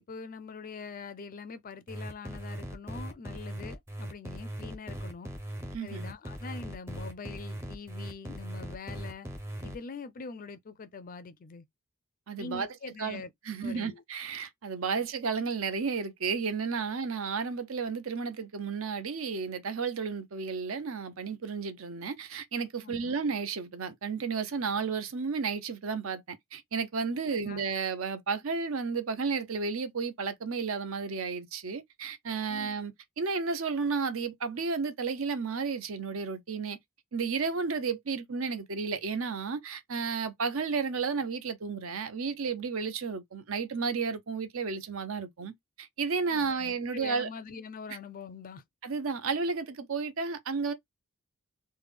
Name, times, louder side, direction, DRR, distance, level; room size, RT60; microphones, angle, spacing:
voice 1, 0.0-5.3 5.8-9.3 9.6-11.7 12.4-13.3 13.6-14.0 15.0-15.1 22.8-23.2 27.3-27.6 32.5-32.7 46.3-48.6, left 4 dB, 40° left, 0.4 m, -43 dB
sound 1, 1.9-9.8, right 1 dB, 10° right, 0.6 m, -39 dB
voice 2, 5.7-6.0 12.3-12.7 13.0-36.8 37.1-45.5 45.8-47.3 48.8-50.7, right 5 dB, 65° right, 0.6 m, -32 dB
3.3 x 2.1 x 3.3 m
head